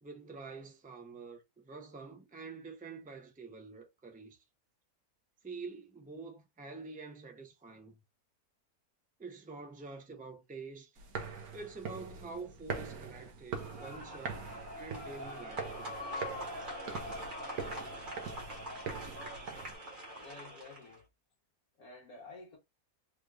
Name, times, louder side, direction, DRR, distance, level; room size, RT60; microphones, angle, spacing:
voice 1, 0.0-4.4 5.4-8.0 9.2-10.9 11.5-14.4 14.8-16.0, right 4 dB, 10° right, 0.4 m, -47 dB
sound 1, 11.0-19.7, right 5 dB, 75° right, 1.4 m, -43 dB
sound 2, 13.6-21.0, equal, 35° right, 1.4 m, -43 dB
voice 2, 20.2-21.0 21.8-22.6, left 3 dB, 75° left, 1.6 m, -51 dB
4.3 x 2.5 x 3.2 m
omnidirectional pair, 1.6 m